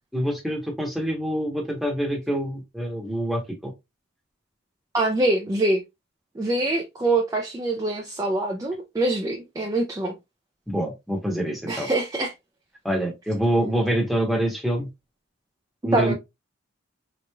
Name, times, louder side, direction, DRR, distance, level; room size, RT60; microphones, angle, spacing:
voice 1, 0.1-3.7 10.7-11.9 12.8-14.9 15.8-16.1, right 1 dB, ahead, 1.0 m, -26 dB
voice 2, 4.9-5.8 6.4-10.1 11.7-12.3 15.9-16.1, right 2 dB, 15° right, 0.4 m, -24 dB
3.8 x 3.0 x 2.2 m
head